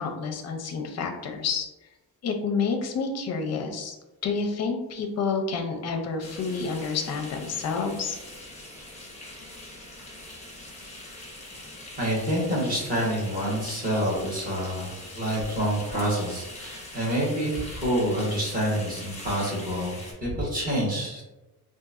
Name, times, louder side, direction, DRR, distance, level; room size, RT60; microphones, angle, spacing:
voice 1, 0.0-1.7 2.2-4.0 4.2-8.2, left 5 dB, 40° left, 3 dB, 0.5 m, -29 dB
sound 1, 6.2-20.1, left 1 dB, 15° left, 0.8 m, -42 dB
voice 2, 12.0-21.2, equal, 20° right, -5 dB, 1.1 m, -27 dB
3.8 x 2.5 x 2.4 m, 1.1 s
cardioid pair, 165°, 39 cm